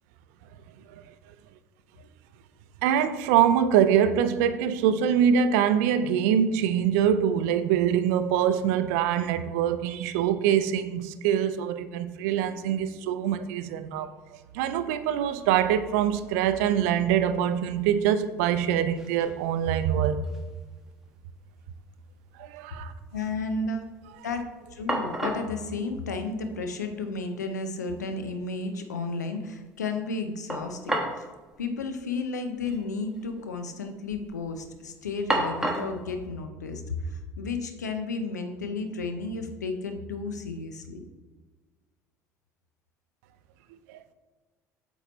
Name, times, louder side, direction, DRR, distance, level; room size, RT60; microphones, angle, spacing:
voice 1, 2.8-20.2 22.4-22.9 43.9-44.0, right 9 dB, 65° right, 0.4 m, -24 dB
sound 1, 18.4-18.5 18.7-19.3 19.7-20.6 20.9-21.0 24.4-24.5 24.9-25.5 26.7-26.8 27.1-27.2 30.5-31.3 31.5-31.6 32.6-32.8 33.1-33.6 34.0-34.4 35.3-36.0, right 1 dB, 5° right, 1.1 m, -31 dB
voice 2, 23.1-23.9 24.2-24.5 24.7-31.3 31.6-41.0, left 3 dB, 85° left, 0.6 m, -33 dB
8.0 x 3.1 x 4.0 m
figure-of-eight pair, 65°, 9 cm